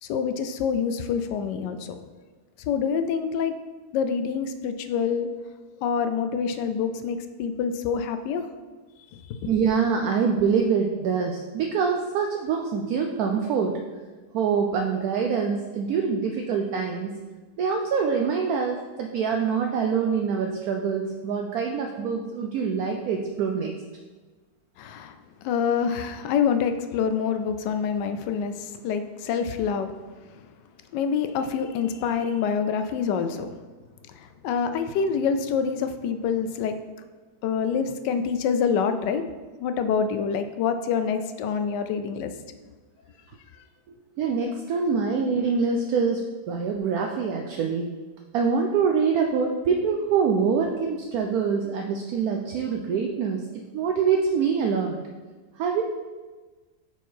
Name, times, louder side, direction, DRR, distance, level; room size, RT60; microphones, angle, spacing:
voice 1, 0.0-2.0 2.7-3.5 3.9-5.3 5.8-8.5 24.8-25.1 25.4-29.9 30.9-33.5 34.2-36.8 37.4-39.2 39.6-42.3, left 6 dB, 85° left, 9 dB, 1.2 m, -26 dB
voice 2, 9.5-13.7 14.3-17.1 17.6-23.7 44.2-47.9 48.3-53.4 53.7-55.0 55.6-55.8, right 6 dB, 70° right, 2 dB, 0.9 m, -25 dB
5.5 x 4.5 x 4.4 m, 1.3 s
omnidirectional pair, 1.8 m